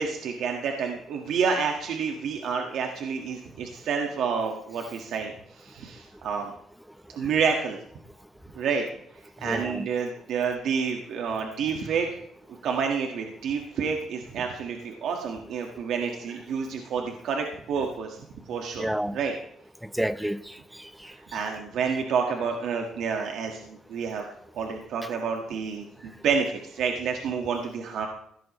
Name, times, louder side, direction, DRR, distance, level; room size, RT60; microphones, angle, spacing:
voice 1, 0.0-6.5 7.1-7.8 8.5-8.9 9.4-12.1 12.6-18.2 18.5-18.9 19.1-19.3 21.1-24.2 24.5-28.1, right 6 dB, 75° right, 1.7 m, -29 dB
voice 2, 9.4-9.9 18.8-19.2 19.8-21.1, equal, 5° right, 0.8 m, -31 dB
16.5 x 13.0 x 3.2 m
cardioid pair, 90°, 0 cm